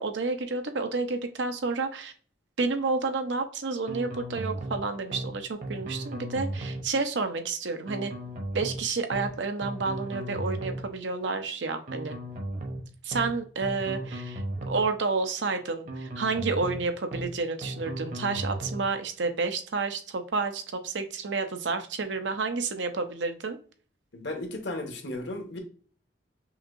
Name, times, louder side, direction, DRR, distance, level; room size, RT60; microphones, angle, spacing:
voice 1, 0.0-2.1 2.6-8.1 8.5-12.2 13.0-23.6, right 4 dB, 85° right, 7 dB, 0.7 m, -30 dB
sound 1, 3.9-4.8 5.1-5.3 5.6-6.8 7.9-8.8 9.1-9.3 9.6-10.8 11.9-12.8 13.1-13.3 13.6-14.8 15.9-16.8 17.1-17.3 17.6-18.8, right 1 dB, 45° right, 0.9 m, -35 dB
voice 2, 24.1-25.6, left 2 dB, 70° left, 4 dB, 1.0 m, -35 dB
5.8 x 2.6 x 2.5 m, 0.42 s
head